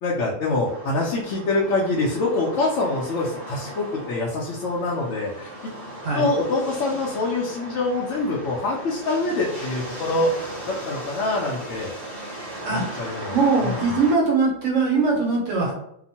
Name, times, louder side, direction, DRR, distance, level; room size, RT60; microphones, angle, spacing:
voice 1, 0.0-5.7 6.1-10.4 10.7-11.9 12.7-13.4 13.6-13.7, left 2 dB, 70° left, -4 dB, 0.9 m, -25 dB
sound 1, 0.6-14.1, right 1 dB, 45° right, 0.9 m, -37 dB
voice 2, 13.3-15.7, right 4 dB, 75° right, -2 dB, 1.2 m, -21 dB
2.8 x 2.1 x 2.7 m, 0.75 s
omnidirectional pair, 1.3 m